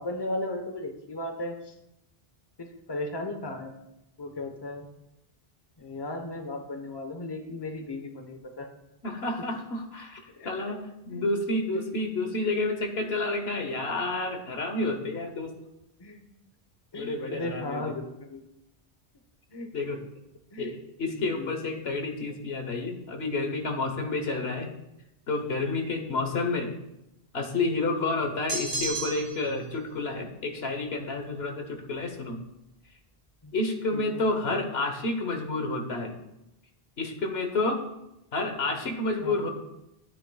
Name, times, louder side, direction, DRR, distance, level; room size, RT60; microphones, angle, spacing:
voice 1, 0.0-1.7 2.6-3.8 4.2-4.9 5.8-8.7 10.3-10.7 11.1-11.2 11.7-11.8 16.0-16.3 16.9-18.4 19.5-19.7 20.5-20.7 21.1-21.6 24.3-24.4 26.0-26.4 33.4-33.5 33.9-34.2 39.2-39.5, left 2 dB, 25° left, 4 dB, 1.0 m, -36 dB
voice 2, 9.0-15.5 16.9-17.8 19.7-20.0 20.6-24.7 25.3-26.7 27.3-32.4 33.5-36.2 37.0-37.8 38.3-39.5, left 2 dB, 80° left, 4 dB, 1.3 m, -30 dB
sound 1, 28.5-29.5, right 3 dB, 40° right, 1.3 m, -32 dB
12.5 x 9.6 x 2.3 m, 0.87 s
omnidirectional pair, 1.0 m